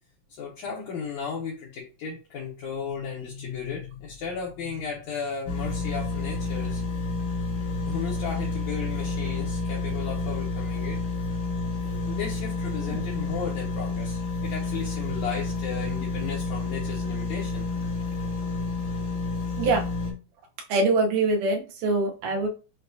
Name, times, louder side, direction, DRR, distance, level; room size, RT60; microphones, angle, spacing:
voice 1, 0.3-7.1 7.9-11.0 12.1-17.7, left 6 dB, 70° left, -2 dB, 1.9 m, -35 dB
sound 1, 5.5-20.1, left 3 dB, 85° left, 2.7 m, -30 dB
voice 2, 20.7-22.5, right 2 dB, 85° right, 2 dB, 2.4 m, -24 dB
6.5 x 2.3 x 2.6 m, 0.33 s
omnidirectional pair, 3.5 m